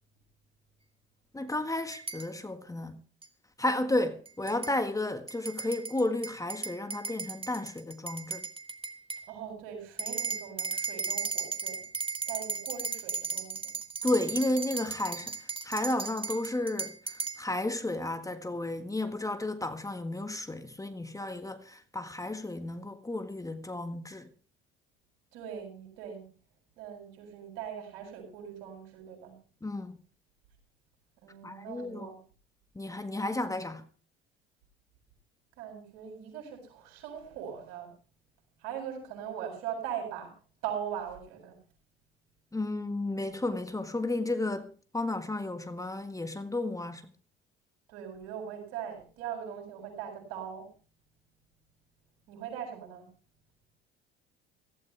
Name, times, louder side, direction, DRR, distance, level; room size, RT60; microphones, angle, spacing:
voice 1, 1.3-3.0 3.6-8.4 14.0-24.3 29.6-30.0 31.4-32.1 32.7-33.9 42.5-47.1, left 2 dB, 10° left, 1.7 m, -33 dB
sound 1, 1.9-2.3 3.2-3.3 4.2-4.7 5.3-9.2 10.0-17.4, right 4 dB, 20° right, 2.3 m, -36 dB
voice 2, 9.3-11.8 12.3-13.7 25.3-26.2 26.8-29.3 31.2-32.2 35.6-37.9 38.6-40.3 40.6-41.6 47.9-50.7 52.3-53.1, right 8 dB, 70° right, 8.0 m, -40 dB
16.5 x 16.0 x 3.4 m
hypercardioid pair, 60°, 30 cm